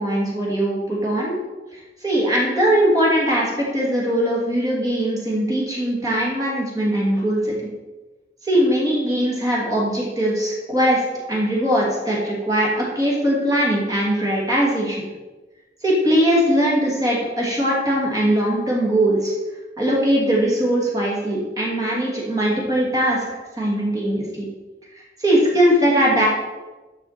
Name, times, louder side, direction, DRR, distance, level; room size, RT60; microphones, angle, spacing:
voice 1, 0.0-1.4 1.7-7.5 8.4-11.0 11.3-15.0 15.8-19.3 19.8-24.5 24.9-26.3, equal, 20° right, -4 dB, 2.5 m, -20 dB
11.0 x 6.7 x 4.4 m, 1.2 s
head